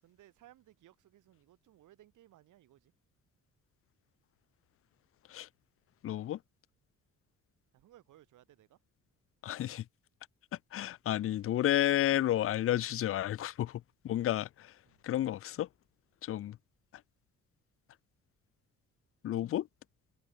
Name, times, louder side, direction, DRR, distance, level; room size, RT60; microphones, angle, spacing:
voice 1, 0.0-2.9 7.7-8.8 14.8-15.0, right 14 dB, 85° right, 8.0 m, -61 dB
voice 2, 6.0-6.4 9.4-9.8 10.7-14.7 15.0-15.7 16.2-16.6 19.2-19.7, left 12 dB, 45° left, 0.5 m, -31 dB
cardioid pair, 90°, 30 cm